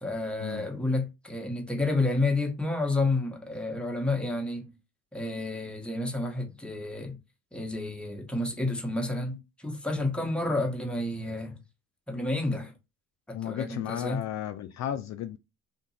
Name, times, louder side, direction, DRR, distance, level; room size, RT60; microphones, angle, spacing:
voice 1, 0.0-4.7 5.1-7.2 7.5-11.6 12.1-12.7 13.3-14.2, left 2 dB, 5° left, 1.0 m, -30 dB
voice 2, 13.3-15.4, left 10 dB, 55° left, 0.5 m, -34 dB
2.9 x 2.5 x 4.1 m
cardioid pair, 85°, 33 cm